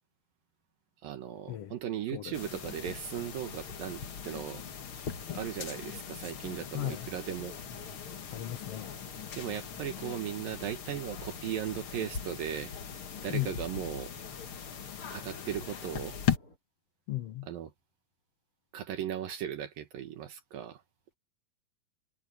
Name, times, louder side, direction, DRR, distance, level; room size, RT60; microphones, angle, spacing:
voice 1, 1.0-4.6 5.3-7.6 9.3-12.7 13.2-14.1 15.1-16.2 17.4-17.7 18.7-20.8, right 10 dB, 70° right, 3.0 m, -37 dB
sound 1, 2.3-16.4, left 8 dB, 45° left, 1.9 m, -39 dB
sound 2, 4.5-16.6, left 2 dB, 25° left, 4.0 m, -58 dB
voice 2, 6.7-7.1 8.3-8.9 13.3-13.5 17.1-17.5, left 15 dB, 70° left, 1.5 m, -35 dB
omnidirectional pair, 4.3 m